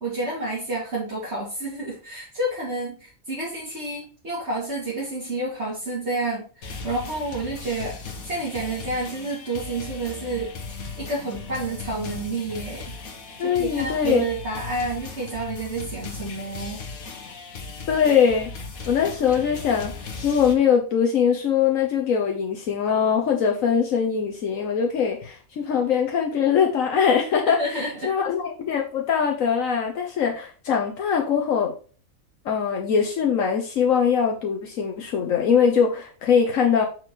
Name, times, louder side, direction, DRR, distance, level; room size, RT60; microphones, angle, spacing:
voice 1, 0.0-10.5 11.0-12.9 13.4-16.8 27.5-28.1, right 2 dB, 50° right, -7 dB, 2.7 m, -29 dB
sound 1, 6.6-20.5, left 4 dB, 90° left, 1.7 m, -37 dB
voice 2, 13.4-14.2 17.9-18.5 18.9-19.9 20.2-31.7 32.4-36.9, left 7 dB, 75° left, 2 dB, 1.3 m, -22 dB
6.2 x 6.0 x 3.1 m, 0.38 s
omnidirectional pair, 1.4 m